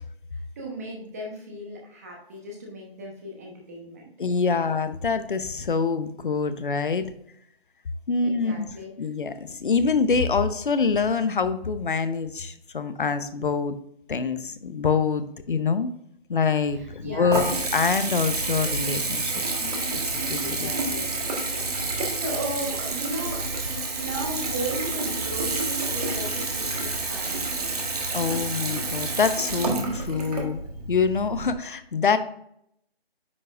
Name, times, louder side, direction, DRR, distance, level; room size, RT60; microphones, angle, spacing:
voice 1, 0.3-4.1 8.2-8.9 16.7-17.5 19.5-20.0 20.4-23.5 23.9-27.8 28.3-28.7, right 1 dB, 15° right, 0 dB, 1.0 m, -37 dB
voice 2, 4.2-7.1 8.1-8.7 9.0-13.8 14.1-15.9 16.3-20.0 20.3-20.7 28.1-30.6 30.9-32.2, left 5 dB, 55° left, 11 dB, 0.8 m, -25 dB
Water tap faucet / Bathtub (filling or washing) / Trickle dribble, 16.7-31.5, right 3 dB, 40° right, 1.4 m, -29 dB
9.5 x 5.4 x 2.4 m, 0.73 s
figure-of-eight pair, 160°, 31 cm